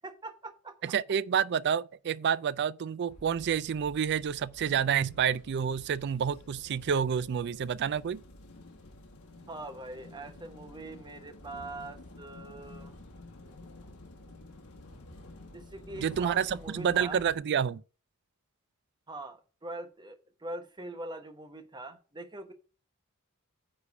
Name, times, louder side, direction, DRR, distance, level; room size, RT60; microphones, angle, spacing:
voice 1, 0.0-0.8 9.5-12.9 13.4-13.5 15.5-17.2 19.1-22.5, right 2 dB, 20° right, 1.0 m, -43 dB
voice 2, 0.8-8.2 16.0-17.8, right 7 dB, 50° right, 0.4 m, -29 dB
sound 1, 3.1-17.4, left 2 dB, 85° left, 1.7 m, -50 dB
9.5 x 3.4 x 6.8 m
head